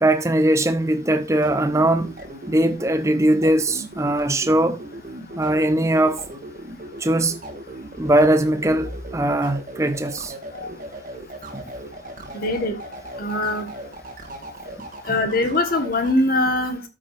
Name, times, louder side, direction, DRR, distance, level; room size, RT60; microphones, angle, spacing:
voice 1, 0.0-2.1 2.5-4.8 5.4-6.2 7.0-7.4 8.0-10.3 11.5-11.6, right 1 dB, 15° right, 0.5 m, -20 dB
sound 1, 1.2-16.2, right 1 dB, 45° right, 2.2 m, -37 dB
voice 2, 12.3-12.8 13.2-13.6 15.1-16.8, left 2 dB, 45° left, 1.4 m, -22 dB
13.5 x 6.0 x 2.5 m
head